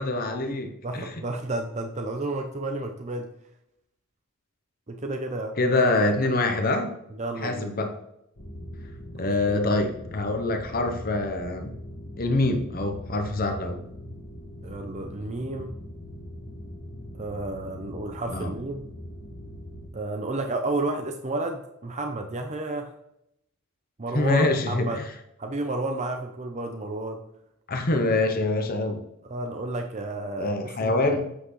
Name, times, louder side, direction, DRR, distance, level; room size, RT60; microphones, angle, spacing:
voice 1, 0.0-1.1 5.6-6.9 7.4-8.0 9.2-11.8 12.2-13.8 18.3-18.5 24.1-25.0 27.7-29.0 30.4-31.3, left 2 dB, 40° left, 5 dB, 0.9 m, -25 dB
voice 2, 0.8-3.3 4.9-5.6 7.1-7.7 9.2-10.0 14.6-15.7 17.1-18.8 19.9-22.9 24.0-25.0 25.4-27.2 29.2-31.2, right 2 dB, 30° right, 4 dB, 0.7 m, -31 dB
sound 1, 8.4-19.9, equal, 90° left, 2.0 m, -41 dB
8.2 x 5.8 x 3.2 m, 0.80 s
head